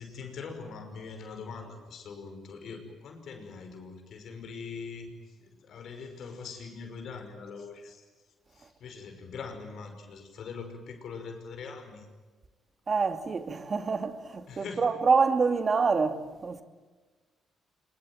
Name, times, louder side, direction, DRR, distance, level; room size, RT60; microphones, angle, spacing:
voice 1, 0.0-8.1 8.5-12.1 14.5-14.9, left 5 dB, 65° left, 5.7 m, -42 dB
voice 2, 12.9-16.6, right 5 dB, 40° right, 2.6 m, -26 dB
25.0 x 22.5 x 9.3 m
cardioid pair, 90°, 0 cm